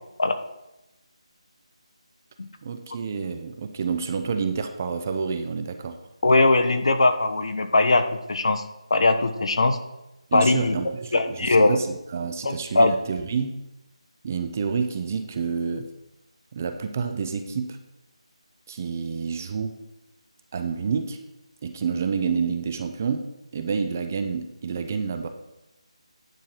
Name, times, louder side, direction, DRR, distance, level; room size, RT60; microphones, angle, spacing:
voice 1, 2.6-6.0 10.3-13.6 14.2-15.9 16.5-17.8 18.7-19.8 20.5-21.2 21.6-23.3 23.5-25.3, right 5 dB, 25° right, 8 dB, 0.6 m, -28 dB
voice 2, 6.2-8.6 8.9-9.8 10.3-10.8 11.1-11.8 12.4-12.9, left 2 dB, 55° left, 8 dB, 1.1 m, -20 dB
10.5 x 4.6 x 6.5 m, 0.95 s
figure-of-eight pair, 170°, 4 cm